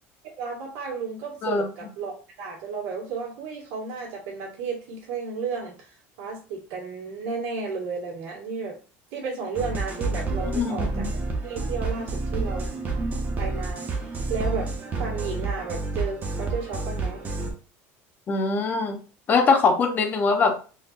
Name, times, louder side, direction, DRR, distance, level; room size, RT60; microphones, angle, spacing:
voice 1, 0.2-8.8 9.1-11.1 11.4-12.7 13.4-13.9 14.3-14.7 15.0-17.3, right 5 dB, 90° right, -3 dB, 1.8 m, -33 dB
sound 1, 9.6-17.5, right 3 dB, 30° right, 0.8 m, -29 dB
voice 2, 10.5-11.1 18.3-19.0 19.3-20.7, left 4 dB, 30° left, 5 dB, 0.6 m, -22 dB
3.9 x 2.7 x 2.5 m, 0.36 s
cardioid pair, 150°, 6 cm